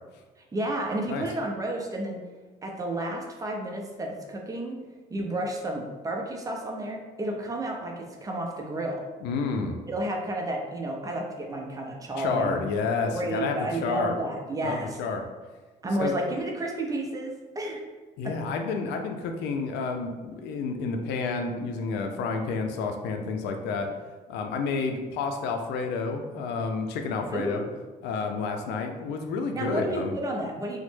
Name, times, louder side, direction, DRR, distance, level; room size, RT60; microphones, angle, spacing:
voice 1, 0.5-2.2 2.6-4.8 5.1-9.0 9.9-12.6 13.1-15.0 15.8-17.8 27.3-27.8 29.5-30.8, right 1 dB, 20° right, 1 dB, 0.5 m, -31 dB
voice 2, 9.2-9.8 12.2-14.1 14.6-15.2 16.0-16.1 18.2-23.9 24.3-27.6 28.0-30.1, left 4 dB, 85° left, 4 dB, 0.4 m, -30 dB
3.0 x 2.1 x 3.1 m, 1.3 s
cardioid pair, 110°, 17 cm